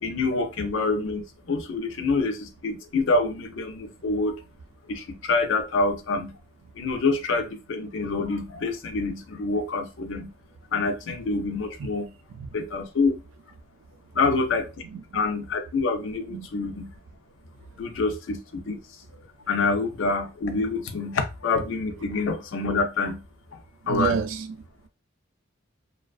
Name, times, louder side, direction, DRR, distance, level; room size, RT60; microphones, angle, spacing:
voice 1, 0.0-4.4 4.9-6.3 6.8-10.3 10.7-12.1 12.5-13.2 14.2-14.7 15.1-16.9 17.8-18.8 19.5-23.2 23.5-23.6 23.9-24.2, left 3 dB, 70° left, 0.5 m, -26 dB
voice 2, 23.9-24.6, right 6 dB, 80° right, 0.4 m, -28 dB
2.4 x 2.2 x 2.3 m
head